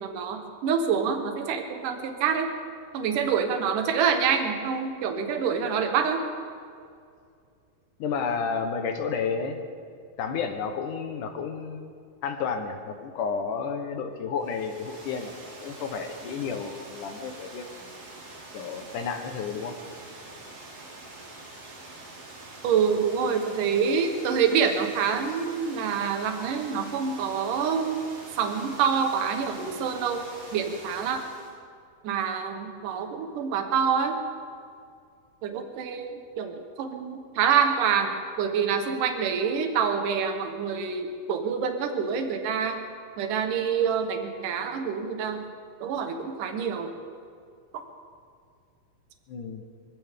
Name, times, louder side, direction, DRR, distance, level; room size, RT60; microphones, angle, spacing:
voice 1, 0.0-2.5 2.9-6.2 22.6-28.0 28.4-30.2 30.5-31.2 32.0-34.2 35.4-42.8 43.2-45.4 45.8-46.9, right 6 dB, 70° right, 5 dB, 2.8 m, -26 dB
voice 2, 8.0-9.6 10.2-11.9 12.2-15.3 15.6-17.9 18.5-19.8 49.3-49.6, left 5 dB, 65° left, 5 dB, 2.6 m, -31 dB
Water, 14.4-31.6, right 2 dB, 45° right, 3.1 m, -45 dB
24.0 x 16.0 x 3.8 m, 2.3 s
omnidirectional pair, 4.2 m